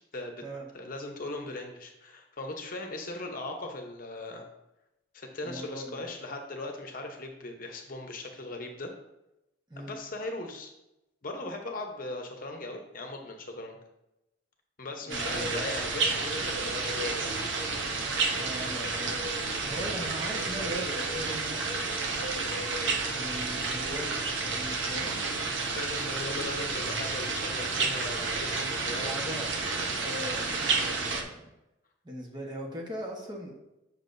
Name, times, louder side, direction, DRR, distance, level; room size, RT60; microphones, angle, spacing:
voice 1, 0.1-0.4 0.7-4.4 5.1-8.9 9.8-10.7 11.2-13.8 14.8-17.4 25.7-29.1, left 2 dB, 50° left, 3 dB, 0.8 m, -39 dB
voice 2, 5.4-6.1 9.7-9.9 15.0-15.7 18.3-22.1 22.9-25.2 29.0-29.5 30.0-31.5 32.0-33.6, equal, 25° right, -1 dB, 1.1 m, -40 dB
sound 1, 15.1-31.2, right 3 dB, 90° right, 0.9 m, -31 dB
7.3 x 6.1 x 2.6 m, 0.92 s
head